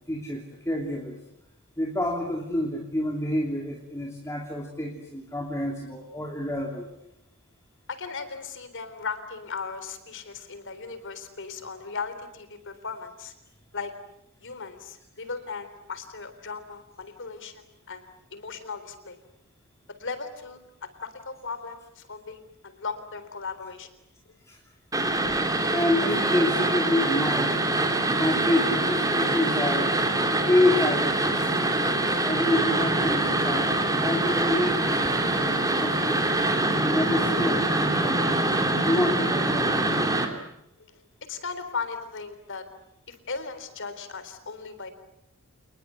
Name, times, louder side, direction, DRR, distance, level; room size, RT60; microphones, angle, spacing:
voice 1, 0.1-1.2 1.8-6.9 24.5-24.6 25.7-27.6 28.1-30.0 30.4-31.7 32.2-36.4 36.9-38.3 38.8-40.2, left 1 dB, 15° left, 0 dB, 3.0 m, -28 dB
voice 2, 7.9-13.3 13.7-13.9 14.4-19.2 20.0-23.9 40.9-41.0 41.3-42.6 43.1-44.9, left 5 dB, 60° left, 10 dB, 3.9 m, -37 dB
sound 1, 24.9-40.3, right 2 dB, 15° right, 3.1 m, -24 dB
28.5 x 21.0 x 9.5 m, 0.81 s
head